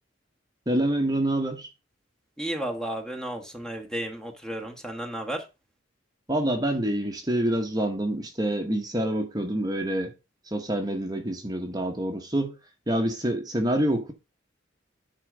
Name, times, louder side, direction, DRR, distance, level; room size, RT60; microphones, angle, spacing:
voice 1, 0.7-1.7 6.3-10.1 10.5-12.5 12.9-14.1, right 1 dB, 20° right, 1.1 m, -26 dB
voice 2, 2.4-5.4, right 1 dB, 5° left, 1.3 m, -33 dB
9.9 x 3.9 x 5.0 m
head